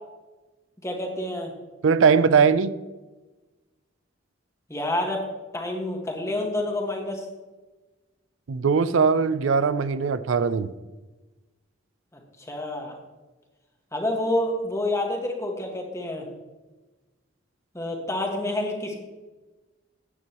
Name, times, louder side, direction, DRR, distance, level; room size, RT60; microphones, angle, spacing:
voice 1, 0.8-1.5 4.7-7.3 12.4-12.9 13.9-16.3 17.7-19.0, left 1 dB, 15° left, 1 dB, 1.6 m, -28 dB
voice 2, 1.8-2.7 8.5-10.7, right 5 dB, 85° right, 14 dB, 0.5 m, -20 dB
14.5 x 9.0 x 3.0 m, 1.2 s
head